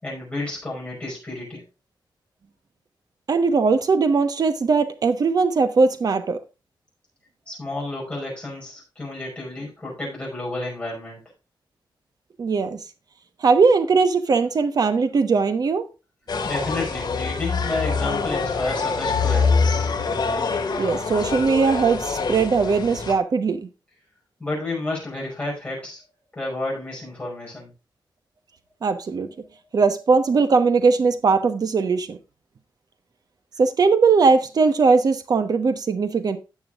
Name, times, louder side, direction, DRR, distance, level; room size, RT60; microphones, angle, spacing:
voice 1, 0.0-1.6 7.5-11.2 16.5-19.5 24.4-26.0 26.3-27.7, left 2 dB, 15° left, 5.4 m, -31 dB
voice 2, 3.3-6.4 12.4-12.8 13.4-15.9 20.8-23.7 28.8-29.3 29.7-32.2 33.6-36.4, right 4 dB, 50° right, 1.1 m, -19 dB
sound 1, 16.3-23.1, left 4 dB, 55° left, 2.1 m, -24 dB
16.5 x 6.2 x 2.4 m
wide cardioid pair, 170°, 8 cm